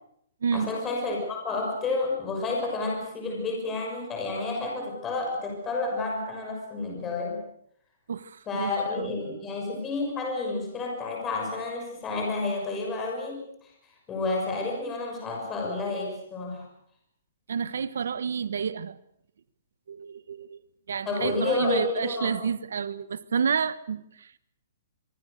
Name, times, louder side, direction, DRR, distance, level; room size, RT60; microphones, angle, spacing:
voice 1, 0.5-7.4 8.5-13.4 14.1-16.7 21.0-22.3, left 3 dB, 15° left, 6.4 m, -30 dB
voice 2, 8.1-9.1 17.5-19.0 19.9-20.6 20.9-24.4, right 6 dB, 80° right, 1.3 m, -30 dB
25.0 x 24.0 x 6.7 m
hypercardioid pair, 170°, 0 cm